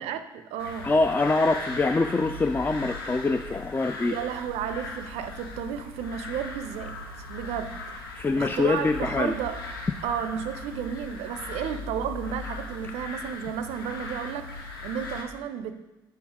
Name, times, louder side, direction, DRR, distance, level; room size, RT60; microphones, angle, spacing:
voice 1, 0.0-0.9 4.0-7.8 8.4-9.6 10.0-15.8, right 8 dB, 70° right, 10 dB, 0.4 m, -33 dB
sound 1, 0.6-15.2, left 3 dB, 90° left, 0.5 m, -38 dB
voice 2, 0.8-4.2 8.2-9.4, left 3 dB, 15° left, 8 dB, 0.3 m, -24 dB
5.2 x 4.5 x 4.9 m, 1.0 s
hypercardioid pair, 45°, 11 cm